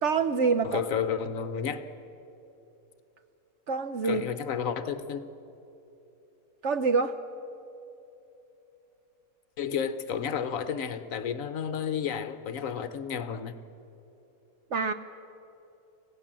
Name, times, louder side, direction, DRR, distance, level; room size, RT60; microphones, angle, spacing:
voice 1, 0.0-0.8 3.7-4.2 6.6-7.2 14.7-14.9, right 5 dB, 60° right, 10 dB, 0.9 m, -26 dB
voice 2, 0.6-1.8 4.0-5.2 9.6-13.5, left 7 dB, 65° left, 11 dB, 1.1 m, -31 dB
25.5 x 16.5 x 7.4 m, 3.0 s
omnidirectional pair, 1.7 m